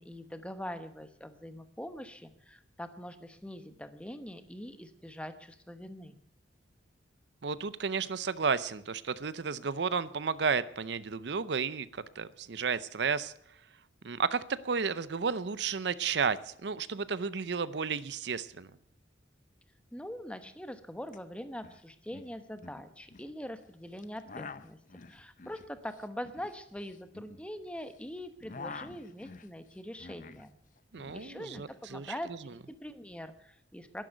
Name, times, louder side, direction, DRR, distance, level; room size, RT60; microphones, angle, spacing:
voice 1, 0.0-6.2 19.9-24.8 25.1-30.6 31.1-34.1, equal, 5° left, 10 dB, 1.0 m, -43 dB
voice 2, 7.4-13.3 14.0-18.7 30.9-32.1, right 5 dB, 65° right, 17 dB, 0.6 m, -32 dB
sound 1, 21.1-21.2 21.4-21.8 22.1-23.3 24.0-28.0 28.2-30.5 30.8-31.7, left 4 dB, 45° left, 0.7 m, -47 dB
12.0 x 11.5 x 9.0 m, 0.70 s
head